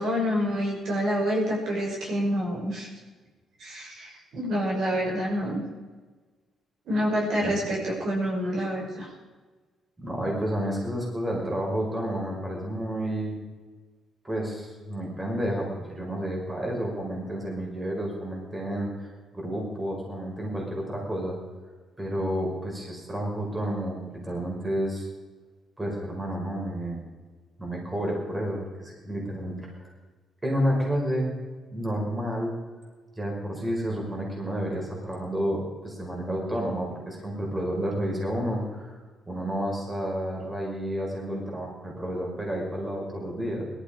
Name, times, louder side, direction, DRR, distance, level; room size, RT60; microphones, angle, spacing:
voice 1, 0.0-2.9 3.6-5.6 6.9-9.1, equal, 70° right, -3 dB, 6.7 m, -27 dB
voice 2, 10.0-13.4 14.2-21.4 22.0-25.1 25.8-27.0 27.6-29.9 30.4-31.3 31.7-32.5 33.2-39.0 39.3-43.7, equal, 20° right, -2 dB, 5.2 m, -30 dB
18.0 x 13.5 x 5.1 m, 1.4 s
cardioid pair, 90°, 0 cm